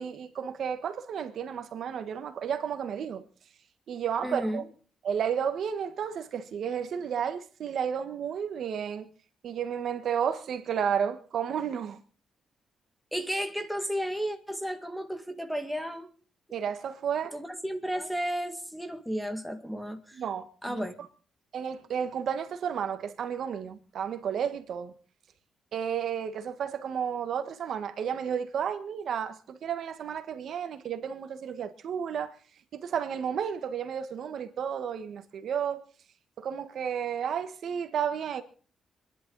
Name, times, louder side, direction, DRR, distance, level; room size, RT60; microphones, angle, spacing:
voice 1, 0.0-3.2 3.9-4.6 5.0-9.1 9.4-12.0 16.5-17.4 20.1-20.8 21.5-24.9 25.7-32.3 32.7-35.8 36.4-38.4, right 8 dB, 60° right, 1.4 m, -32 dB
voice 2, 4.2-4.7 13.1-16.1 17.3-20.2 20.6-20.9, equal, ahead, 2.0 m, -33 dB
27.5 x 11.0 x 4.0 m
cardioid pair, 130°, 0 cm